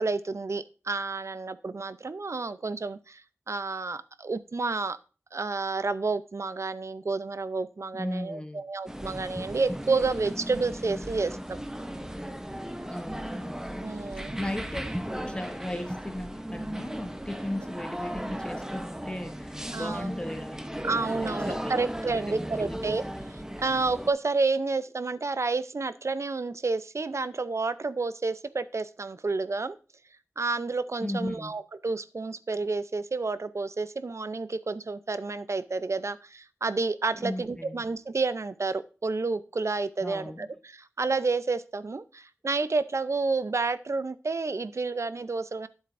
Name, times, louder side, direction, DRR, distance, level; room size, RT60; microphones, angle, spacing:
voice 1, 0.0-3.2 3.5-5.0 5.3-11.6 13.8-14.4 19.7-20.1 20.8-23.0 23.3-29.8 30.4-45.7, right 3 dB, 65° right, 14 dB, 0.5 m, -30 dB
voice 2, 7.9-8.6 12.9-13.8 14.4-20.6 20.8-21.7 22.3-22.8 31.0-31.5 37.2-37.8 40.0-40.5, left 1 dB, 20° left, 6 dB, 1.0 m, -36 dB
sound 1, 8.9-24.1, equal, 10° right, 0.8 m, -36 dB
12.0 x 7.2 x 2.6 m, 0.35 s
wide cardioid pair, 55°, 5 cm